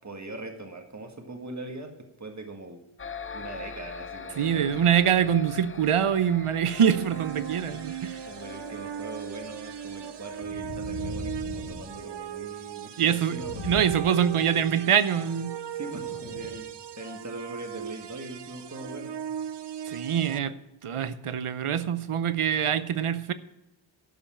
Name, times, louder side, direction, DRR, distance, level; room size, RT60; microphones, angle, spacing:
voice 1, 0.0-1.9 2.2-2.8 3.3-4.9 8.3-14.4 15.7-16.7 16.9-19.3, right 2 dB, 35° right, 4 dB, 1.8 m, -41 dB
sound 1, 3.0-10.4, left 5 dB, 25° left, 0.5 m, -43 dB
voice 2, 4.4-8.2 13.0-15.6 19.9-20.5 20.8-23.3, right 8 dB, 85° right, 14 dB, 0.8 m, -24 dB
sound 2, 6.7-20.4, right 9 dB, 60° right, 0.6 m, -38 dB
sound 3, 9.4-9.5 10.4-12.5 13.2-14.8 15.9-16.7 17.3-17.4, left 3 dB, 80° left, 1.2 m, -40 dB
12.0 x 5.5 x 7.2 m, 0.96 s
wide cardioid pair, 55°, 50 cm